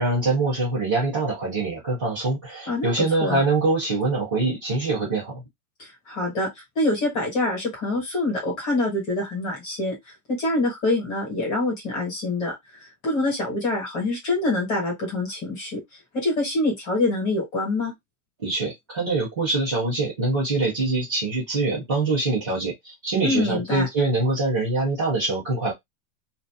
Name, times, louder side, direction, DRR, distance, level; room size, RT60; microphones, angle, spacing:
voice 1, 0.0-5.4 18.4-25.7, right 3 dB, 15° right, 0.4 m, -24 dB
voice 2, 2.7-3.4 5.8-6.5 6.7-10.0 10.3-12.5 13.0-15.8 16.1-17.9 23.2-23.9, left 2 dB, 15° left, 1.2 m, -25 dB
2.7 x 2.4 x 3.3 m
supercardioid pair, 180°, 45 cm